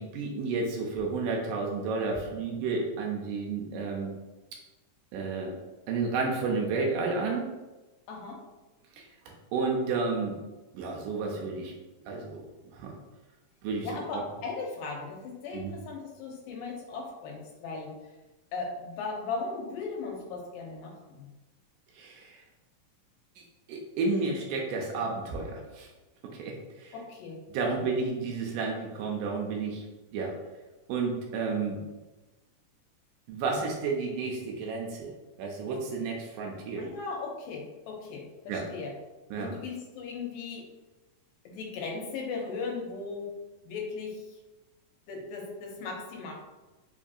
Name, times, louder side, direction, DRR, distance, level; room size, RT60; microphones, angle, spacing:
voice 1, 0.0-4.1 5.1-5.5 5.9-7.4 9.0-10.4 10.7-11.7 12.1-12.4 12.7-12.9 13.6-13.9 14.1-14.2 15.5-15.7 21.9-22.4 23.4-25.9 26.4-27.0 27.5-29.8 30.1-30.3 30.9-31.8 33.3-35.1 35.4-36.9 38.5-38.6 39.3-39.5, right 4 dB, 80° right, 0 dB, 2.1 m, -31 dB
voice 2, 8.1-8.4 13.8-17.9 18.5-21.3 26.9-27.4 36.8-38.9 39.3-40.6 41.5-43.3 43.6-44.4 45.1-46.3, left 4 dB, 85° left, 0 dB, 2.4 m, -37 dB
5.3 x 2.6 x 2.4 m, 1.1 s
omnidirectional pair, 4.0 m